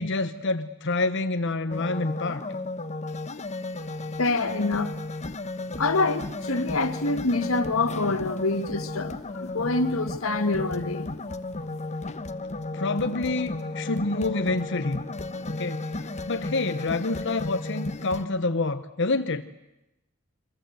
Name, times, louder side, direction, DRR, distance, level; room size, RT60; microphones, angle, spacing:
voice 1, 0.0-2.4 12.7-15.0 15.5-15.8 16.3-19.4, left 3 dB, 60° left, 1.1 m, -27 dB
sound 1, 1.7-18.3, left 2 dB, 35° left, 1.1 m, -34 dB
voice 2, 3.9-4.9 5.8-11.4, left 3 dB, 85° left, 2.0 m, -26 dB
27.5 x 25.0 x 8.1 m
head